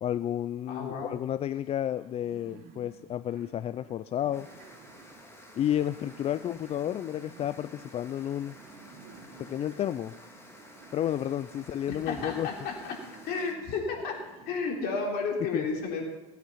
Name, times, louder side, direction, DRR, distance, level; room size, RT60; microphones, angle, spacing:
voice 1, 0.0-4.5 5.5-8.6 9.4-10.1 10.9-12.5 15.5-15.7, left 11 dB, 30° left, 14 dB, 0.4 m, -31 dB
voice 2, 0.7-1.2 11.9-12.9 13.3-14.2 14.5-16.0, left 4 dB, 55° left, 0 dB, 3.7 m, -32 dB
sound 1, 1.7-14.7, right 5 dB, 55° right, 2.7 m, -54 dB
sound 2, 4.3-13.5, left 1 dB, 15° left, 3.2 m, -52 dB
17.5 x 9.2 x 5.7 m, 1.2 s
hypercardioid pair, 95°, 19 cm